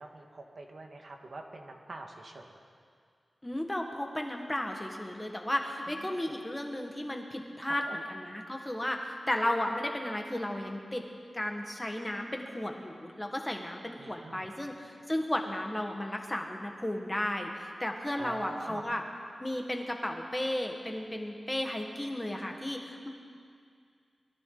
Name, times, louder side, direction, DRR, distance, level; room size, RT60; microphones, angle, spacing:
voice 1, 0.0-2.6 5.9-6.2 7.6-7.7 14.0-14.5 18.2-18.8, right 2 dB, 55° right, 2 dB, 1.6 m, -45 dB
voice 2, 3.4-11.0 11.3-19.0 19.4-23.1, left 1 dB, 15° left, 2 dB, 1.5 m, -34 dB
22.0 x 13.5 x 3.9 m, 2.2 s
wide cardioid pair, 115°, 0 cm